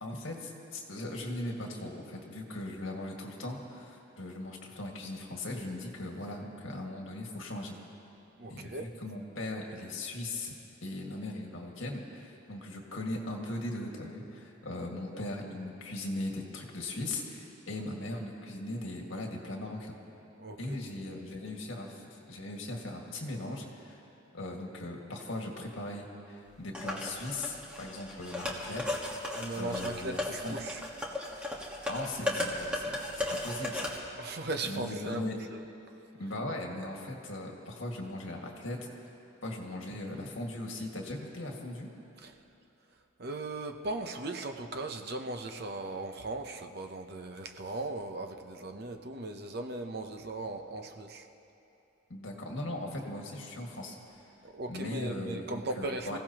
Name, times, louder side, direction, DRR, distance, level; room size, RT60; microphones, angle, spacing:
voice 1, 0.0-7.8 8.5-10.5 10.8-20.0 20.6-24.0 24.3-29.0 29.2-30.6 31.9-33.9 34.7-35.4 36.2-39.1 39.4-41.9 52.1-54.0 54.7-56.2, left 1 dB, 65° left, 0 dB, 1.9 m, -39 dB
voice 2, 8.4-8.9 20.4-20.8 29.4-30.8 34.2-35.2 42.2-42.3 43.2-51.3 54.4-56.2, right 2 dB, 50° right, 6 dB, 0.8 m, -38 dB
sound 1, 26.7-34.0, left 1 dB, 5° right, 1.4 m, -36 dB
26.0 x 16.0 x 2.9 m, 2.9 s
head